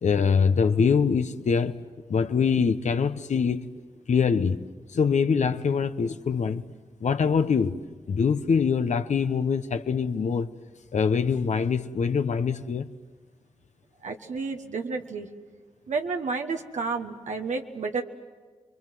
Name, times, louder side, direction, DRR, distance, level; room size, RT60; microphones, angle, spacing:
voice 1, 0.0-1.8 2.1-3.7 4.1-4.6 4.9-6.6 7.0-7.8 8.1-10.5 10.9-12.9, left 6 dB, 75° left, 1.0 m, -24 dB
voice 2, 14.0-15.3 15.9-18.0, right 4 dB, 85° right, 1.4 m, -31 dB
29.0 x 22.5 x 7.7 m
cardioid pair, 50°, 12 cm